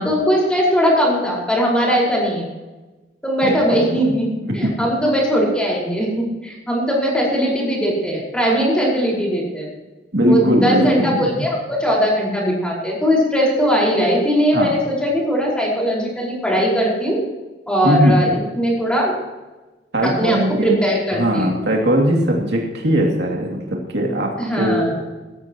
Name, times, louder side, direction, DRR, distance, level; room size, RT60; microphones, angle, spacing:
voice 1, 0.0-2.5 3.2-4.3 4.5-9.7 10.3-17.2 17.7-19.1 20.0-21.5 24.4-24.9, equal, 5° left, -4 dB, 5.1 m, -19 dB
voice 2, 3.4-4.0 10.1-11.3 14.5-14.7 17.8-18.3 19.9-20.8 21.2-24.3 24.6-25.0, equal, 65° right, 0 dB, 2.7 m, -19 dB
18.5 x 14.0 x 3.1 m, 1.2 s
head